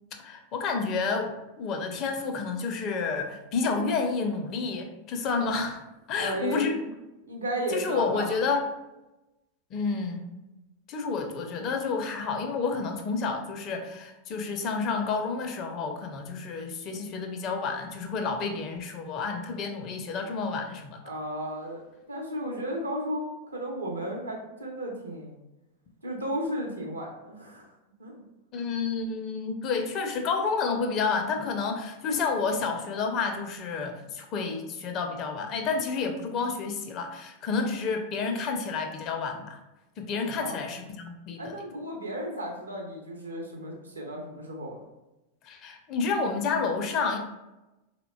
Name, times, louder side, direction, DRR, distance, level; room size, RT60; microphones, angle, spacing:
voice 1, 0.2-5.8 6.1-6.7 7.7-8.6 9.7-10.3 10.9-21.0 28.5-39.6 40.0-41.5 45.4-47.2, left 4 dB, 35° left, 4 dB, 0.4 m, -30 dB
voice 2, 6.1-6.8 7.2-8.4 21.0-21.8 22.1-25.4 26.0-27.7 28.0-28.2 40.4-40.5 41.4-44.8, right 1 dB, 75° right, -1 dB, 0.7 m, -34 dB
3.6 x 2.1 x 2.2 m, 0.98 s
figure-of-eight pair, 90°, 0 cm